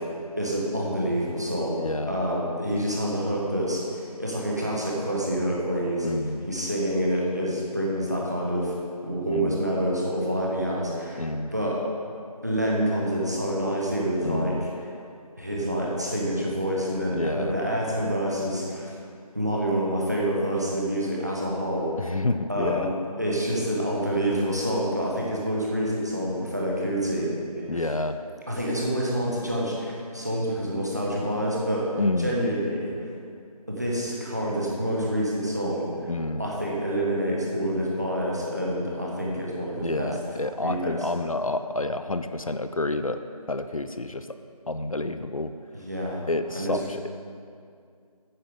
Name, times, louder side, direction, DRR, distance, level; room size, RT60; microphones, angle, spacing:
voice 1, 0.4-6.1 6.4-8.7 9.0-11.8 12.4-14.7 15.4-19.0 19.3-22.2 22.5-22.9 23.2-27.8 28.5-31.9 32.2-32.9 33.7-35.9 36.4-41.0 45.8-46.2 46.5-46.8, equal, 25° right, -4 dB, 1.3 m, -27 dB
voice 2, 1.8-2.2 6.0-6.5 9.3-9.6 11.2-11.5 14.2-14.7 17.1-17.5 22.0-22.9 27.7-28.2 32.0-32.4 36.1-36.4 39.8-43.2 43.5-44.4 44.7-45.5 46.3-47.1, left 2 dB, 60° left, 9 dB, 0.5 m, -29 dB
9.6 x 9.5 x 3.8 m, 2.3 s
figure-of-eight pair, 180°, 20 cm